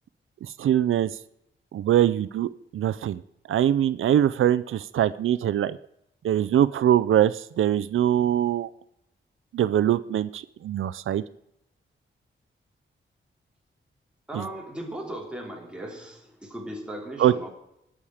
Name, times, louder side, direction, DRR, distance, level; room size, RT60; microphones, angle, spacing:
voice 1, 0.4-1.1 1.7-3.2 3.5-5.8 6.2-8.7 9.5-11.2 14.3-14.4 17.2-17.3, right 11 dB, 90° right, 15 dB, 0.5 m, -23 dB
voice 2, 14.3-17.5, right 1 dB, 5° right, -1 dB, 3.0 m, -37 dB
21.0 x 7.3 x 4.9 m, 0.78 s
wide cardioid pair, 150°, 20 cm